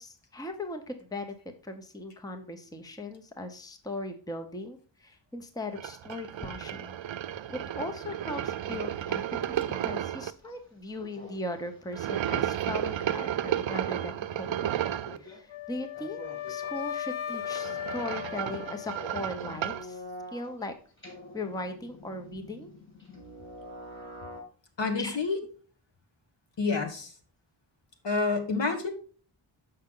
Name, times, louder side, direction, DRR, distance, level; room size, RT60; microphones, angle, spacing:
voice 1, 0.0-1.4 1.6-7.0 7.5-14.7 15.2-20.0 20.3-20.7 21.3-22.7 25.0-25.2, left 2 dB, 10° left, 6 dB, 0.8 m, -38 dB
sound 1, 5.8-10.3 11.9-15.2 17.3-19.9, right 10 dB, 70° right, 0.5 m, -33 dB
sound 2, 8.2-10.0 10.4-10.5 11.0-13.0 13.4-14.0 14.8-15.4 15.9-17.0 18.7-20.6 21.0-24.4, left 1 dB, 25° left, 2.7 m, -47 dB
Wind instrument woodwind instrument, 15.5-19.6, left 11 dB, 85° left, 0.8 m, -37 dB
voice 2, 24.8-25.4 26.6-27.1 28.0-28.9, left 4 dB, 65° left, 5 dB, 1.5 m, -28 dB
6.5 x 5.8 x 3.7 m, 0.42 s
wide cardioid pair, 80°, 48 cm